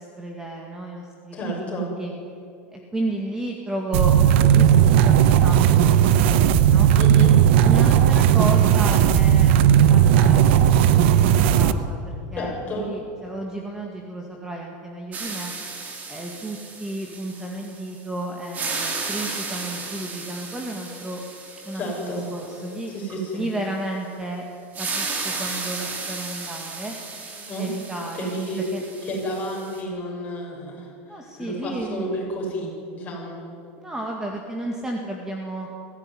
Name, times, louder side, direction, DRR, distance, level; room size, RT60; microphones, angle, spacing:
voice 1, 0.0-2.1 2.7-6.9 7.6-9.5 9.9-15.5 16.1-21.2 21.6-22.9 23.3-24.5 24.8-27.0 27.6-28.8 31.1-32.1 33.8-35.7, right 1 dB, 10° right, 1 dB, 2.0 m, -33 dB
voice 2, 1.3-1.9 7.0-7.3 12.3-12.9 21.7-22.2 22.9-23.4 27.3-27.7 28.2-28.6 29.0-33.4, equal, 20° left, -2 dB, 7.4 m, -31 dB
sound 1, 3.9-11.7, right 9 dB, 65° right, 1.1 m, -16 dB
sound 2, 15.1-18.0 18.4-23.2 24.7-29.8, right 3 dB, 25° right, 3.6 m, -34 dB
21.0 x 16.0 x 9.8 m, 2.6 s
supercardioid pair, 160°, 7 cm